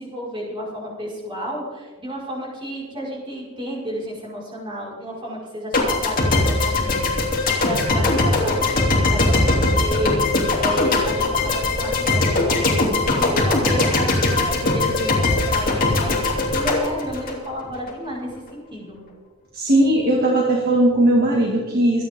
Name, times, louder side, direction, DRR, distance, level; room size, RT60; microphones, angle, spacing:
voice 1, 0.0-19.0, equal, 25° right, -5 dB, 5.4 m, -31 dB
sound 1, 5.7-17.9, left 2 dB, 40° left, 3.2 m, -20 dB
voice 2, 19.5-22.0, right 1 dB, 45° right, -3 dB, 2.2 m, -18 dB
25.5 x 10.0 x 3.8 m, 1.3 s
head